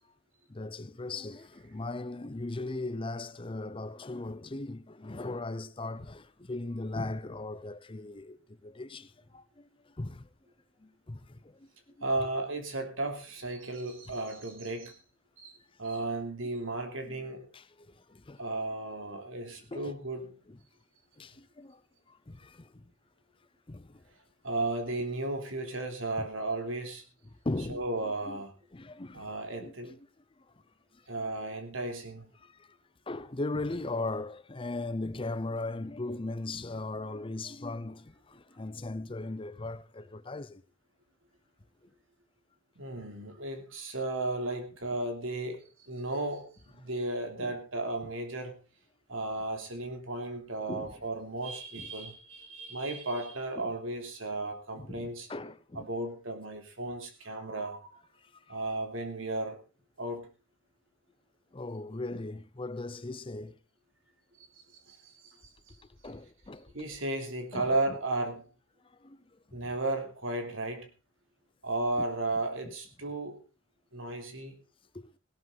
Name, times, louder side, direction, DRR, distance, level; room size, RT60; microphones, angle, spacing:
voice 1, 0.5-10.3 10.8-11.7 12.0-12.1 17.1-17.2 17.5-18.4 19.7-19.9 20.5-20.6 21.2-21.8 22.1-22.9 23.7-24.0 26.2-26.3 27.3-28.4 28.7-30.0 30.4-30.5 30.9-31.0 32.4-32.8 33.1-40.6 47.4-47.6 50.7-50.9 51.8-51.9 54.7-55.9 58.2-58.6 61.5-63.6 66.0-66.7 67.5-67.7 68.8-69.2 69.5-69.7 74.9-75.1, left 2 dB, 25° left, 0.6 m, -39 dB
voice 2, 12.0-15.0 15.4-17.5 18.4-20.3 24.4-27.0 27.7-28.5 29.1-30.0 31.1-32.3 42.8-48.6 49.1-55.3 55.7-58.0 58.5-59.6 60.0-60.3 64.9-65.8 66.7-68.5 69.5-70.9 71.6-73.4 73.9-74.6, right 2 dB, 75° right, 3.1 m, -34 dB
17.0 x 12.5 x 4.0 m
head